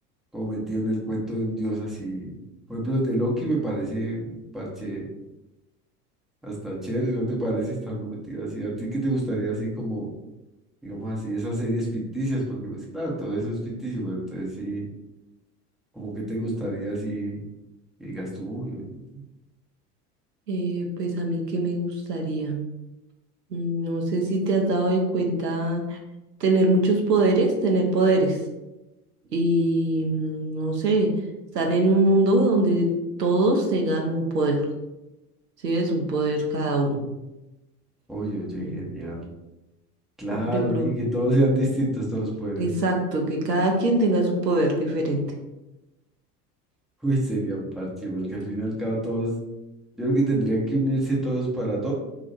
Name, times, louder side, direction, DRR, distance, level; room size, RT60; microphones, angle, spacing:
voice 1, 0.3-2.4 2.7-5.0 6.4-10.1 10.8-14.8 15.9-17.4 18.0-19.2 38.1-39.3 40.2-42.7 47.0-49.4 50.0-51.9, right 1 dB, ahead, -5 dB, 1.0 m, -27 dB
voice 2, 20.5-22.6 23.5-26.0 26.4-28.4 29.3-31.1 31.5-32.9 33.2-34.6 35.6-37.0 38.6-38.8 40.3-40.9 42.6-45.2, right 2 dB, 85° right, 1 dB, 0.7 m, -23 dB
2.8 x 2.4 x 4.1 m, 1.0 s
figure-of-eight pair, 75°, 47 cm